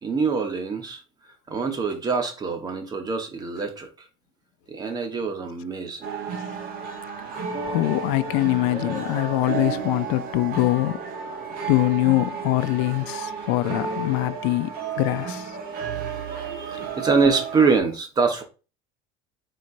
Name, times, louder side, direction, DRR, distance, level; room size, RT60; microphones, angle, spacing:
voice 1, 0.0-1.0 1.5-4.1 4.7-6.0 14.2-14.3 15.6-18.4, right 4 dB, 20° right, 0.9 m, -25 dB
sound 1, 6.0-17.8, right 5 dB, 55° right, 1.3 m, -32 dB
voice 2, 7.3-11.0 11.7-15.5, left 18 dB, 85° left, 0.4 m, -23 dB
sound 2, 7.5-12.7, right 10 dB, 80° right, 1.2 m, -44 dB
4.5 x 4.2 x 2.5 m
cardioid pair, 160°, 18 cm